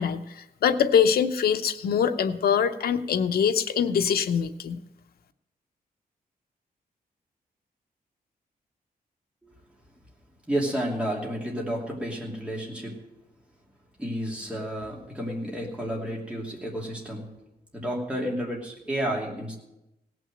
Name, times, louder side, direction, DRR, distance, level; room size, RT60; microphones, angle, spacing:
voice 1, 0.0-4.8, left 7 dB, 85° left, 8 dB, 0.7 m, -23 dB
voice 2, 10.5-12.9 14.0-17.3 17.7-19.5, equal, 5° right, -3 dB, 2.8 m, -31 dB
17.0 x 6.3 x 7.7 m, 0.91 s
wide cardioid pair, 160°, 15 cm